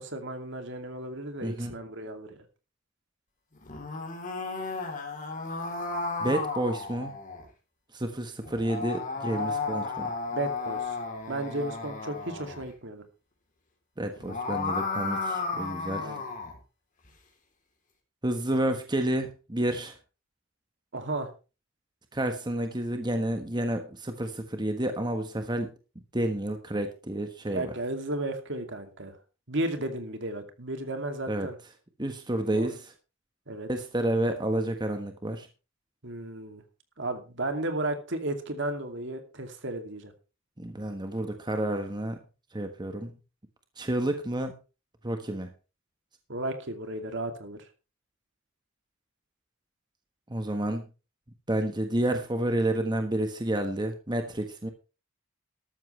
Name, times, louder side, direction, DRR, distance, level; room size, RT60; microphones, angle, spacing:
voice 1, 0.0-2.5 9.4-9.5 10.3-11.0 11.3-13.0 16.0-16.2 20.9-21.3 27.5-29.2 29.5-31.6 32.5-32.7 33.5-33.7 36.0-36.6 37.0-40.1 46.3-47.6, right 2 dB, 65° right, 6 dB, 2.6 m, -34 dB
voice 2, 1.4-1.8 6.2-7.1 7.9-10.1 14.0-16.1 18.2-20.0 22.1-25.7 26.1-27.7 31.3-31.5 32.0-32.9 33.7-35.5 40.6-42.2 42.5-43.1 43.8-44.6 45.0-45.5 50.3-50.8 51.5-54.7, right 1 dB, 20° right, 6 dB, 1.3 m, -30 dB
sound 1, 3.6-7.5 8.4-12.7 14.1-16.6, left 3 dB, 40° left, 3.4 m, -33 dB
13.5 x 13.0 x 3.3 m, 0.31 s
head